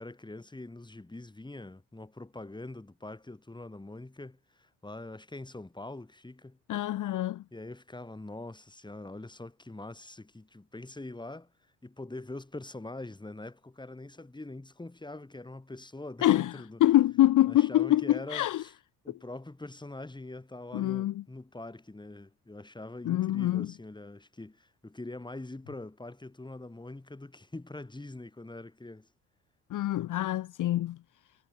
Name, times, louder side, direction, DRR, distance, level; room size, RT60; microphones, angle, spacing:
voice 1, 0.0-6.6 7.5-11.5 11.8-16.8 17.5-18.7 19.0-29.1, left 2 dB, 10° left, 3.3 m, -43 dB
voice 2, 6.7-7.4 16.2-18.6 20.7-21.2 23.0-23.7 29.7-31.0, left 14 dB, 50° left, 0.7 m, -25 dB
supercardioid pair, 85°, 40 cm